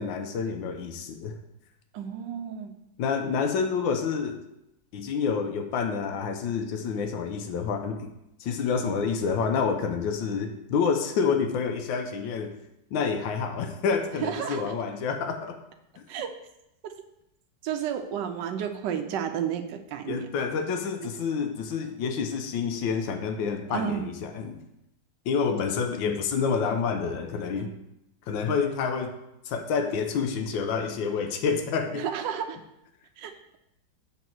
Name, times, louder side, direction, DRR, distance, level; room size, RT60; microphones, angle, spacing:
voice 1, 0.0-1.3 3.0-4.4 4.9-8.1 8.4-12.5 12.9-15.6 16.0-16.1 20.1-24.6 25.3-27.7 28.3-29.2 29.5-32.0, left 5 dB, 85° left, 6 dB, 1.4 m, -28 dB
voice 2, 1.9-2.7 14.2-14.6 16.1-16.3 17.6-20.3 23.7-24.1 27.6-27.7 31.9-32.6 33.2-33.3, right 8 dB, 75° right, 6 dB, 1.3 m, -31 dB
7.2 x 3.1 x 5.8 m, 0.84 s
omnidirectional pair, 2.0 m